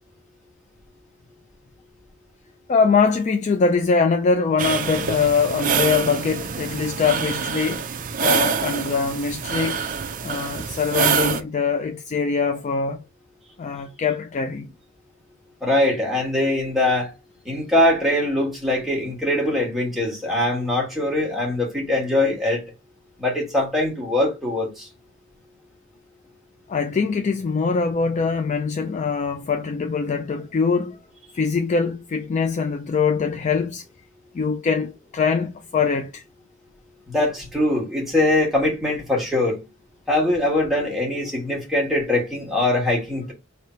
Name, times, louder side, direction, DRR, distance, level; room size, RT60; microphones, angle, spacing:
voice 1, 2.7-7.9 8.2-9.8 10.2-13.0 13.6-14.7 26.7-31.0 31.3-33.8 34.3-36.2, left 5 dB, 35° left, 0.3 m, -23 dB
sound 1, 4.6-11.4, right 6 dB, 40° right, 0.4 m, -25 dB
voice 2, 15.6-17.1 17.4-22.6 23.2-24.9 37.1-39.6 40.1-43.3, left 1 dB, ahead, 1.4 m, -22 dB
3.2 x 2.8 x 4.3 m
head